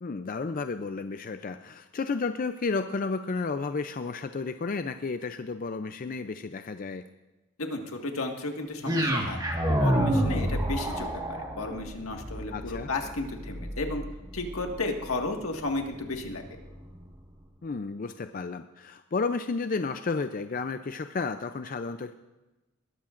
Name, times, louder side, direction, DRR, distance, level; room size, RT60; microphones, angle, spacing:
voice 1, 0.0-7.0 12.5-12.9 17.6-22.1, left 4 dB, 40° left, 9 dB, 0.4 m, -32 dB
voice 2, 7.6-9.4 9.7-14.0 14.3-16.4, left 2 dB, 85° left, 3 dB, 1.7 m, -33 dB
sound 1, 8.8-17.0, equal, 20° right, 1.5 m, -30 dB
20.5 x 13.0 x 2.5 m, 1.1 s
head